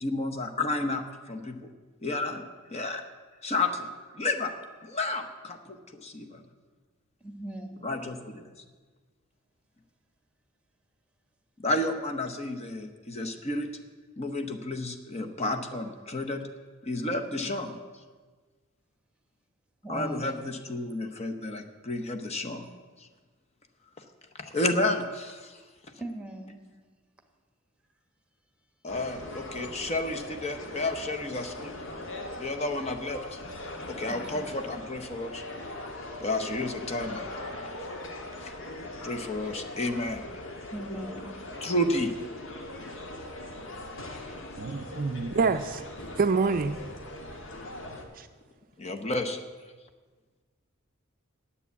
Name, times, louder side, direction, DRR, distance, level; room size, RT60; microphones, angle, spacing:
voice 1, 0.0-1.6 2.0-2.4 2.7-3.0 3.4-3.9 4.1-4.5 4.8-6.4 7.8-8.5 11.6-13.7 14.2-16.4 16.8-17.7 19.9-22.7 24.4-25.6 28.8-31.7 32.4-33.4 33.9-35.4 36.2-37.3 38.4-38.5 39.0-40.2 41.6-42.1 48.8-49.4, left 2 dB, 30° left, 0.8 m, -31 dB
voice 2, 7.2-7.9 19.8-20.3 26.0-26.6 34.1-34.3 40.7-41.3, right 1 dB, 5° right, 1.2 m, -38 dB
sound 1, 28.9-48.1, left 1 dB, 65° left, 1.5 m, -40 dB
voice 3, 44.6-45.8 46.2-46.8 48.2-48.3, right 4 dB, 40° right, 0.4 m, -26 dB
9.8 x 8.3 x 8.2 m
head